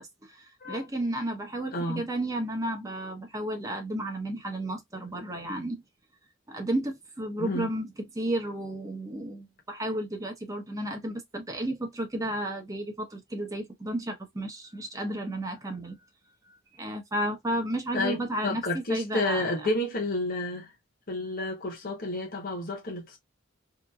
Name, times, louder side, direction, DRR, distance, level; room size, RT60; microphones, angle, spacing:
voice 1, 0.0-5.8 6.5-16.0 16.4-19.7, right 1 dB, 15° right, 0.8 m, -33 dB
voice 2, 1.7-2.0 7.4-7.7 17.9-20.7 21.1-23.2, left 2 dB, 45° left, 1.0 m, -30 dB
2.9 x 2.5 x 2.3 m
head